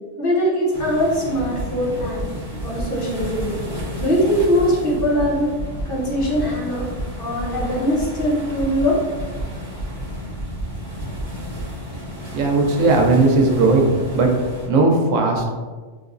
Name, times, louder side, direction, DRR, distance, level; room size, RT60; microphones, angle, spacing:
voice 1, 0.2-2.2 2.6-3.6 4.0-5.5 5.9-6.9 7.2-9.0, equal, 50° left, -4 dB, 0.9 m, -21 dB
sound 1, 0.7-14.7, equal, 25° left, 1.4 m, -33 dB
sound 2, 1.4-1.6 2.0-2.2 2.6-2.8 3.2-3.4 3.8-4.0 4.4-4.6 5.0-5.2 5.6-5.8 6.2-6.4 6.8-7.0 7.4-7.6 8.0-8.2 8.6-8.8 9.2-9.4 9.8-10.0 10.4-10.6 11.0-11.2 11.6-11.7, right 3 dB, 65° left, 1.2 m, -30 dB
voice 2, 12.3-14.3 14.7-15.5, right 3 dB, 90° right, 2 dB, 1.0 m, -17 dB
3.2 x 2.9 x 2.5 m, 1.4 s
omnidirectional pair, 1.2 m